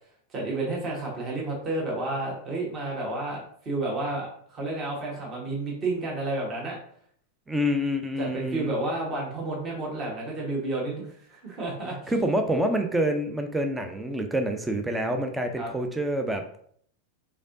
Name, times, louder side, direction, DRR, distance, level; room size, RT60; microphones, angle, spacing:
voice 1, 0.3-6.8 8.2-12.1 15.5-15.7, right 2 dB, 30° right, -3 dB, 1.4 m, -31 dB
voice 2, 7.5-8.7 12.1-16.6, equal, 10° right, 5 dB, 0.5 m, -27 dB
5.1 x 3.6 x 2.6 m, 0.62 s
figure-of-eight pair, 90°, 0 cm